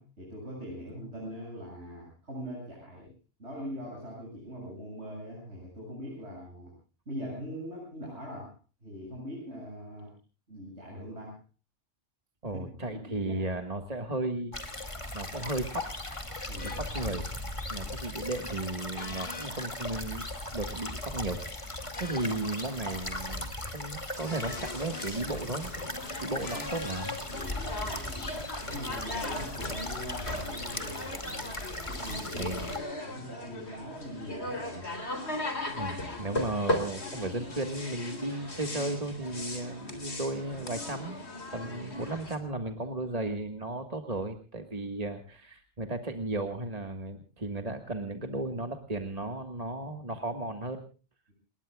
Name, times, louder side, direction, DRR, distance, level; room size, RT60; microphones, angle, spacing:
voice 1, 0.0-3.1 3.4-6.7 7.1-8.5 8.8-10.1 10.5-11.4 12.5-13.7 16.5-16.8 17.8-17.9 26.2-26.4 27.8-28.2 28.6-31.6 31.8-32.7 33.0-34.9 35.7-35.8 41.5-41.7, equal, 75° right, -3 dB, 8.0 m, -42 dB
voice 2, 12.4-14.5 15.1-15.9 16.6-17.3 17.7-25.7 26.2-27.2 32.3-32.7 35.8-41.2 41.5-50.8, right 2 dB, 35° right, 6 dB, 1.7 m, -35 dB
sound 1, 14.5-32.8, left 1 dB, 25° left, 2.4 m, -38 dB
sound 2, 16.6-16.8 19.0-19.5 21.9-22.3 24.3-25.1 26.4-27.2, left 3 dB, 50° left, 2.3 m, -42 dB
sound 3, 24.2-42.4, left 2 dB, 70° left, 3.9 m, -38 dB
29.0 x 20.5 x 2.3 m, 0.35 s
omnidirectional pair, 1.2 m